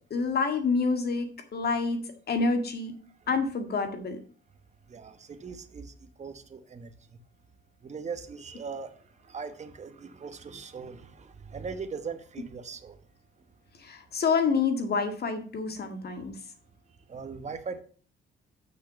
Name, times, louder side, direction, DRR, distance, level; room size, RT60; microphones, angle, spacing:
voice 1, 0.1-2.0 2.3-2.9 3.3-4.2 13.8-16.3, left 4 dB, 55° left, 6 dB, 1.9 m, -27 dB
voice 2, 4.9-7.0 7.8-13.0 17.1-17.8, right 5 dB, 35° right, 8 dB, 1.1 m, -40 dB
6.4 x 5.9 x 6.8 m, 0.42 s
cardioid pair, 90°, 20 cm